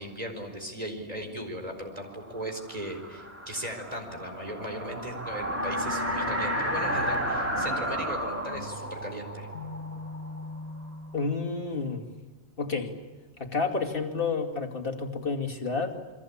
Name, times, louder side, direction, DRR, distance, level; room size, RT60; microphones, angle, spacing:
voice 1, 0.0-9.5, right 1 dB, 35° right, 4 dB, 4.7 m, -37 dB
sound 1, 2.1-10.9, equal, 10° right, 2.9 m, -32 dB
sound 2, 5.6-11.5, left 3 dB, 75° left, 2.8 m, -41 dB
voice 2, 11.1-12.0 12.6-13.0 13.4-16.0, left 4 dB, 55° left, 1 dB, 2.8 m, -30 dB
29.0 x 23.0 x 8.7 m, 1.3 s
omnidirectional pair, 1.1 m